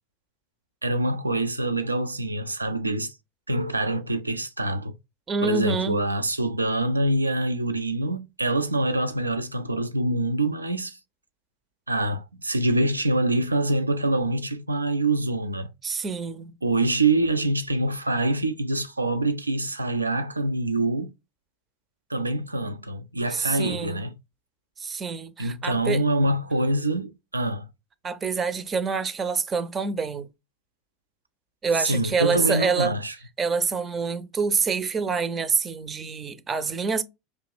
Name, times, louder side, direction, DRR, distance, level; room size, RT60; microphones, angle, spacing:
voice 1, 0.8-3.1 3.5-5.0 5.4-11.0 11.9-15.7 16.6-21.1 22.1-24.1 25.4-27.7 31.8-33.1, right 2 dB, 85° right, 0.4 m, -25 dB
voice 2, 5.3-6.0 15.8-16.5 23.3-24.0 24.8-26.0 28.0-30.3 31.6-32.9 33.4-37.0, right 5 dB, 25° right, 0.5 m, -26 dB
4.7 x 2.9 x 2.2 m
figure-of-eight pair, 80°, 0 cm